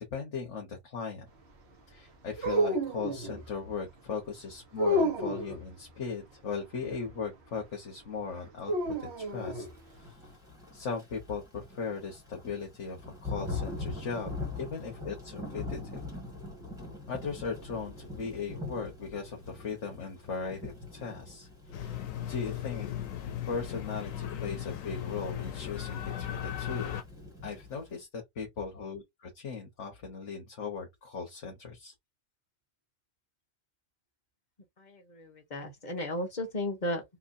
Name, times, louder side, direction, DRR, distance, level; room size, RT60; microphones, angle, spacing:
voice 1, 0.1-1.3 1.9-8.7 9.0-9.7 10.0-10.2 10.7-16.0 17.1-21.5 21.7-22.9 23.5-27.0 27.4-31.9, left 5 dB, 65° left, 1.4 m, -38 dB
sound 1, 2.4-3.4 4.8-5.6 8.6-9.7, equal, 55° right, 1.2 m, -29 dB
Thunder / Rain, 9.9-28.0, left 3 dB, 5° right, 1.7 m, -43 dB
sound 2, 21.7-27.0, left 10 dB, 80° left, 1.1 m, -37 dB
voice 2, 34.8-37.0, left 1 dB, 35° left, 1.2 m, -35 dB
4.4 x 2.6 x 2.6 m
omnidirectional pair, 1.4 m